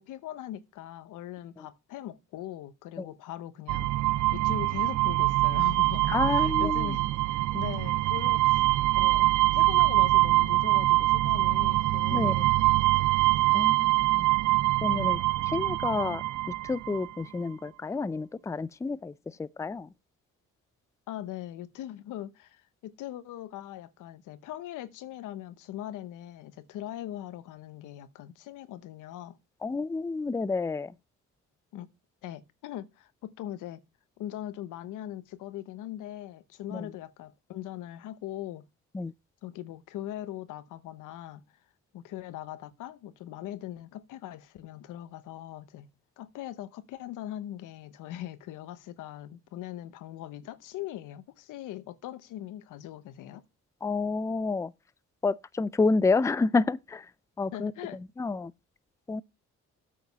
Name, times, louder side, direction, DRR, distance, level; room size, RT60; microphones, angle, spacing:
voice 1, 0.0-8.7 9.0-9.3 9.5-12.5 14.1-14.3 15.0-15.3 21.1-29.4 31.7-31.9 32.2-33.8 34.2-38.7 39.4-41.5 41.9-45.9 46.2-53.4 57.5-58.0, left 13 dB, 90° left, 1.0 m, -40 dB
sound 1, 3.7-17.1, right 19 dB, 75° right, 0.5 m, -24 dB
voice 2, 6.1-6.9 12.1-12.3 13.5-14.2 14.8-15.2 15.5-16.2 16.6-19.1 19.4-19.9 29.6-30.9 36.7-36.8 38.9-39.1 53.8-54.7 55.2-57.1 57.4-57.7 58.2-58.5 59.1-59.2, left 4 dB, 10° left, 0.4 m, -29 dB
8.7 x 5.1 x 6.8 m
cardioid pair, 90°, 30 cm